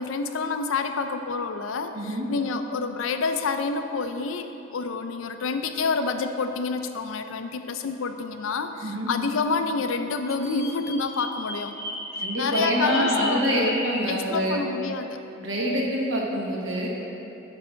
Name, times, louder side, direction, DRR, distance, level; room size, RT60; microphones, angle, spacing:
voice 1, 0.0-11.7 12.4-13.7 14.1-15.2, left 4 dB, 90° left, 8 dB, 0.5 m, -28 dB
voice 2, 1.9-2.3 8.8-9.1 12.2-14.6 15.4-16.9, equal, 70° right, -3 dB, 1.3 m, -26 dB
Bird vocalization bird call bird song, 10.3-14.1, left 2 dB, 15° left, 0.7 m, -34 dB
8.8 x 3.5 x 6.2 m, 2.9 s
head